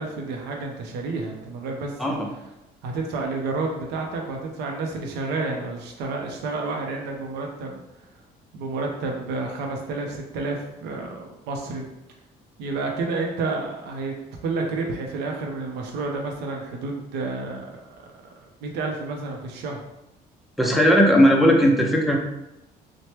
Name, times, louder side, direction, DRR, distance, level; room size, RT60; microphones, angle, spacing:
voice 1, 0.0-2.2 2.8-7.8 8.5-11.9 12.6-14.1 14.4-17.8 18.2-18.3 18.6-19.8, right 3 dB, 80° right, 1 dB, 0.5 m, -30 dB
voice 2, 20.6-22.2, equal, ahead, 0 dB, 0.4 m, -17 dB
2.9 x 2.1 x 3.2 m, 0.90 s
cardioid pair, 110°, 17 cm